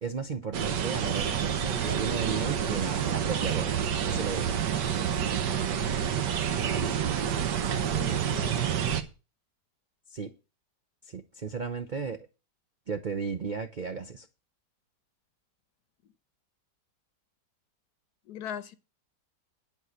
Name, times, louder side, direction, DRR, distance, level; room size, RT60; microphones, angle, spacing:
voice 1, 0.0-3.8 4.0-4.6 10.1-10.3 11.1-12.3 12.9-14.3, right 5 dB, 60° right, 0.5 m, -34 dB
sound 1, 0.5-9.0, right 8 dB, 75° right, 1.6 m, -28 dB
voice 2, 7.8-8.9 18.3-18.7, left 9 dB, 70° left, 1.2 m, -41 dB
10.5 x 4.7 x 8.0 m
omnidirectional pair, 1.9 m